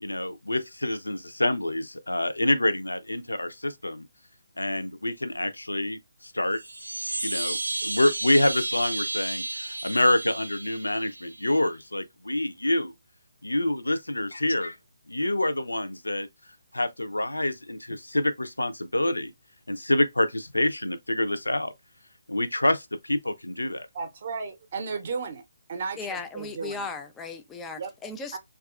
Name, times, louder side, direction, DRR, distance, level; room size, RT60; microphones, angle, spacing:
voice 1, 0.0-4.1 4.6-6.6 7.2-12.9 13.4-14.8 15.1-16.3 16.7-19.3 19.7-21.7 22.3-23.9, left 1 dB, 85° left, 0.4 m, -27 dB
sound 1, 6.5-11.6, right 2 dB, 90° right, 0.6 m, -33 dB
voice 2, 23.9-25.4 25.7-26.8 27.8-27.9 28.3-28.4, right 5 dB, 45° right, 0.5 m, -34 dB
voice 3, 26.0-28.4, left 4 dB, 10° left, 0.3 m, -36 dB
2.7 x 2.3 x 2.3 m
figure-of-eight pair, 145°, 0 cm